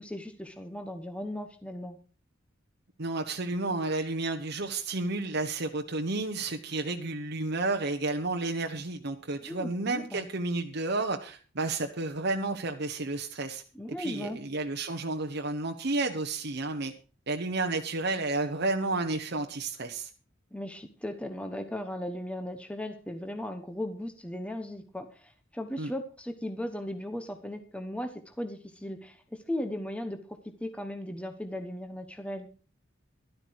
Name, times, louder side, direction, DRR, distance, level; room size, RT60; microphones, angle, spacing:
voice 1, 0.0-2.0 9.4-10.3 13.7-14.4 20.5-30.2 30.6-32.5, left 1 dB, 5° left, 7 dB, 1.1 m, -37 dB
voice 2, 3.0-13.6 14.0-16.9 17.3-20.1 25.8-25.9, right 2 dB, 60° right, 5 dB, 1.1 m, -31 dB
12.5 x 12.0 x 4.7 m, 0.37 s
head